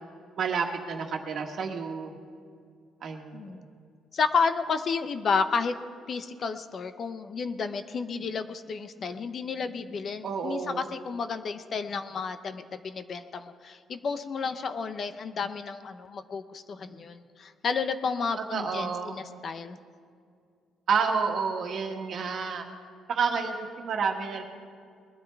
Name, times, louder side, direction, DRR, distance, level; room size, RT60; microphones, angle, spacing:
voice 1, 0.4-2.2 3.0-3.6 10.2-10.9 18.4-19.2 20.9-22.7 23.1-24.4, right 5 dB, 50° right, 3 dB, 1.5 m, -30 dB
voice 2, 4.1-5.7 6.1-19.8, left 5 dB, 40° left, 10 dB, 0.6 m, -31 dB
21.0 x 12.5 x 3.5 m, 2.3 s
cardioid pair, 140°, 0 cm